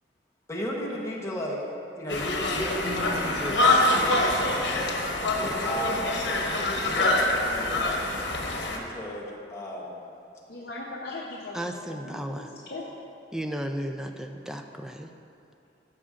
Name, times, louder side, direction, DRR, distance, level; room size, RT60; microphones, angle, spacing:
voice 1, 0.5-1.6 2.0-4.9 5.3-6.0 6.6-8.2 8.7-10.1, equal, 15° left, -3 dB, 1.0 m, -35 dB
Conversation, 2.1-8.8, left 2 dB, 85° left, 1.0 m, -25 dB
Acoustic guitar / Strum, 2.8-6.9, right 1 dB, 65° right, 1.6 m, -44 dB
voice 2, 10.5-11.6 11.8-12.4 12.7-12.8, left 2 dB, 60° left, -4 dB, 0.8 m, -38 dB
voice 3, 11.5-12.5 13.3-15.1, right 1 dB, 5° right, 5 dB, 0.3 m, -34 dB
14.0 x 6.2 x 2.5 m, 2.6 s
head